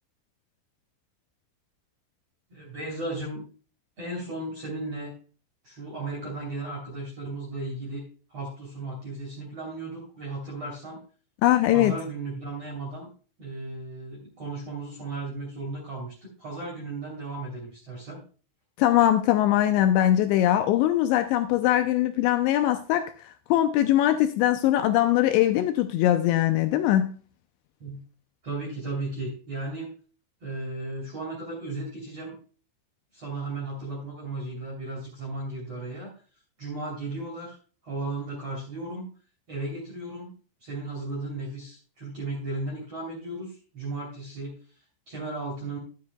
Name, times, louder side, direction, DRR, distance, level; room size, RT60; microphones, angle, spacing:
voice 1, 2.5-3.4 4.0-5.1 5.6-11.0 11.7-13.1 13.4-18.2 27.8-28.0 28.4-29.9 30.4-32.4 33.1-36.1 36.6-37.6 37.8-39.1 39.5-40.3 40.6-44.6 45.1-45.8, right 2 dB, 35° right, -4 dB, 3.5 m, -35 dB
voice 2, 11.4-11.9 18.8-27.2, left 13 dB, 85° left, 8 dB, 2.6 m, -22 dB
12.5 x 9.8 x 2.2 m, 0.38 s
omnidirectional pair, 5.6 m